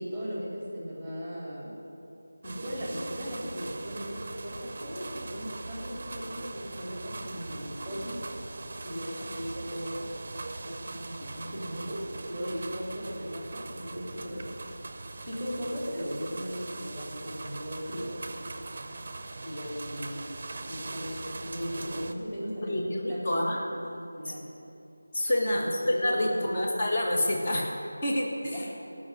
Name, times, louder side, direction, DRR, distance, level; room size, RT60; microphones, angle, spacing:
voice 1, 0.0-1.8 2.4-8.2 8.8-10.1 10.6-14.5 15.3-18.2 19.4-20.3 20.6-23.7 23.9-24.5 25.4-26.6 28.5-28.8, equal, 5° left, -6 dB, 2.9 m, -37 dB
sound 1, 2.4-22.1, right 2 dB, 30° right, 0.7 m, -41 dB
voice 2, 22.6-23.7 24.2-24.3 25.1-27.7 28.0-28.6, left 1 dB, 30° left, -2 dB, 1.6 m, -28 dB
17.0 x 6.3 x 8.2 m, 2.7 s
figure-of-eight pair, 175°, 0 cm